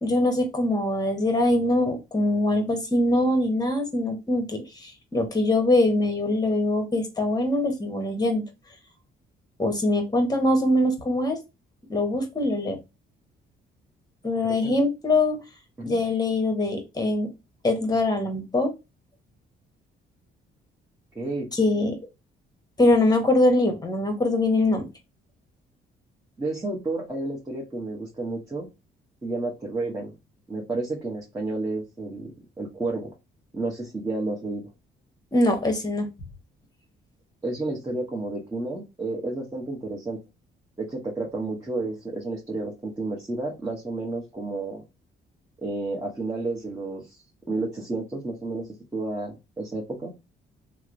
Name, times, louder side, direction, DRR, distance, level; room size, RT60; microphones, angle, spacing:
voice 1, 0.0-8.4 9.6-11.4 11.9-12.8 14.2-15.4 15.8-17.3 17.6-18.7 21.5-22.0 22.8-24.9 35.3-36.1, left 1 dB, 20° left, 5 dB, 1.0 m, -23 dB
voice 2, 21.1-21.5 26.4-28.7 29.2-30.2 30.5-32.3 32.6-33.1 33.5-34.7 37.4-40.2 40.8-44.8 45.6-47.2 47.5-48.7 48.9-50.1, right 2 dB, 15° right, -3 dB, 0.9 m, -31 dB
3.1 x 2.0 x 3.8 m, 0.25 s
cardioid pair, 90°, 20 cm